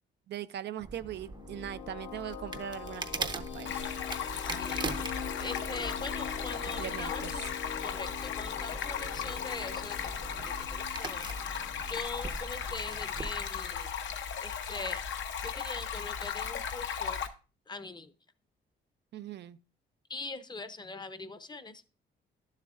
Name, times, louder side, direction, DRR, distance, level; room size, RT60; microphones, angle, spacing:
voice 1, 0.3-3.8 6.8-7.5 19.1-19.6, right 11 dB, 60° right, 0.4 m, -40 dB
sound 1, 0.8-13.4, right 3 dB, 20° right, 0.6 m, -43 dB
sound 2, 1.1-11.9, left 8 dB, 90° left, 1.3 m, -44 dB
Stream, 3.7-17.3, left 7 dB, 70° left, 0.9 m, -36 dB
voice 2, 4.4-4.9 5.3-7.5 7.8-10.1 10.4-11.3 11.9-13.9 14.4-15.2 15.4-17.2 17.7-18.1 20.1-21.8, left 3 dB, 20° left, 0.7 m, -42 dB
11.0 x 7.3 x 2.4 m
cardioid pair, 90°, 20 cm